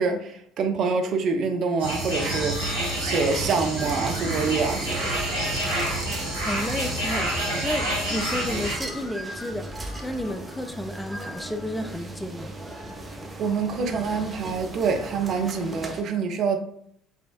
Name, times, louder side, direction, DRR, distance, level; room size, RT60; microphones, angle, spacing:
voice 1, 0.0-5.2 13.4-16.6, right 5 dB, 50° right, 0.6 m, -26 dB
sound 1, 1.8-8.8, right 1 dB, 85° right, 1.4 m, -28 dB
sound 2, 2.3-16.0, right 1 dB, 20° right, 0.8 m, -38 dB
sound 3, 2.4-3.2 3.9-6.0 6.5-8.3 8.9-10.7, left 2 dB, 70° left, 0.8 m, -43 dB
voice 2, 6.4-12.5, left 1 dB, 5° left, 0.4 m, -32 dB
4.9 x 3.3 x 2.7 m
figure-of-eight pair, 55°, 0 cm